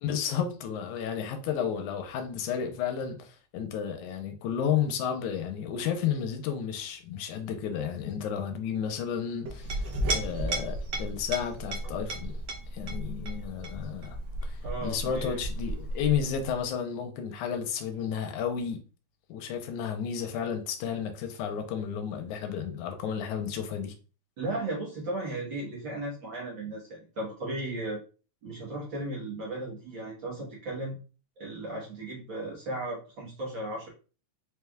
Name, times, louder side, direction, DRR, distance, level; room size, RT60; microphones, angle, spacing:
voice 1, 0.0-12.3 12.7-14.2 14.4-18.8 19.3-23.9, left 8 dB, 85° left, 2.1 m, -32 dB
Chink clink, 9.5-16.6, right 1 dB, 75° right, 1.1 m, -34 dB
voice 2, 14.6-15.4 24.4-28.0 28.4-31.0 31.4-33.9, right 2 dB, 55° right, 1.4 m, -35 dB
4.9 x 3.4 x 2.3 m
omnidirectional pair, 3.4 m